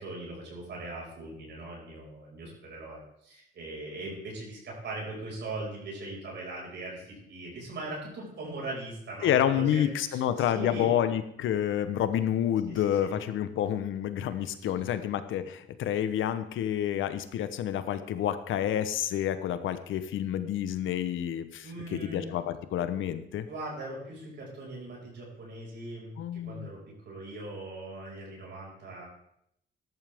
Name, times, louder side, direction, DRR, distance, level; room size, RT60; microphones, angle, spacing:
voice 1, 0.0-10.2 10.5-10.9 12.7-13.1 21.6-22.3 23.5-29.1, right 2 dB, 65° right, -3 dB, 5.7 m, -40 dB
voice 2, 9.2-23.5 26.2-26.7, left 10 dB, 80° left, 11 dB, 1.0 m, -29 dB
14.0 x 11.5 x 3.6 m, 0.74 s
cardioid pair, 90°, 20 cm